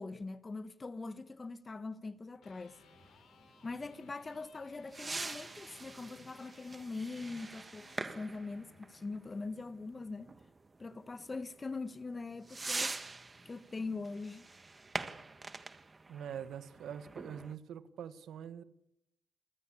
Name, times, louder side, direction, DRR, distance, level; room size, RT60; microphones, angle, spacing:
voice 1, 0.0-2.8 3.6-10.3 10.8-12.9 13.4-14.5, left 3 dB, 25° left, 1.4 m, -42 dB
Electric guitar, 2.2-10.3, left 5 dB, 65° left, 6.7 m, -63 dB
sound 1, 2.8-17.5, right 3 dB, 25° right, 1.6 m, -45 dB
voice 2, 16.1-18.6, right 8 dB, 70° right, 1.6 m, -44 dB
28.0 x 15.0 x 8.6 m
cardioid pair, 90°, 0 cm